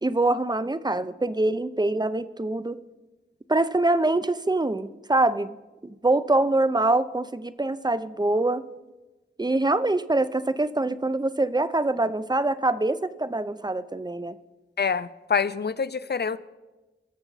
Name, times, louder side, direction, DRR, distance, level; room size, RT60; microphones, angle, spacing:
voice 1, 0.0-2.8 3.5-5.5 5.8-8.7 9.4-14.4, right 2 dB, 20° right, 14 dB, 0.5 m, -24 dB
voice 2, 14.8-16.4, left 6 dB, 55° left, 16 dB, 0.5 m, -26 dB
20.5 x 6.9 x 4.1 m, 1.2 s
wide cardioid pair, 45°, 20 cm